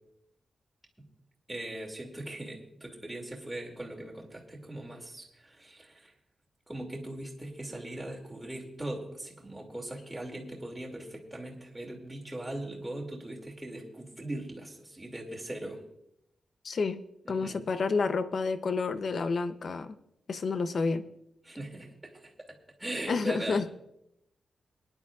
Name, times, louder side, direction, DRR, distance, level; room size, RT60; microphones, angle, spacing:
voice 1, 1.5-6.1 6.7-15.8 17.2-17.6 21.4-22.3 22.8-23.7, right 1 dB, 10° right, -2 dB, 2.4 m, -40 dB
voice 2, 16.6-17.0 17.3-20.0 20.3-21.1 23.1-23.7, left 4 dB, 50° left, 11 dB, 0.7 m, -29 dB
23.0 x 10.5 x 2.4 m, 0.81 s
wide cardioid pair, 145°, 0 cm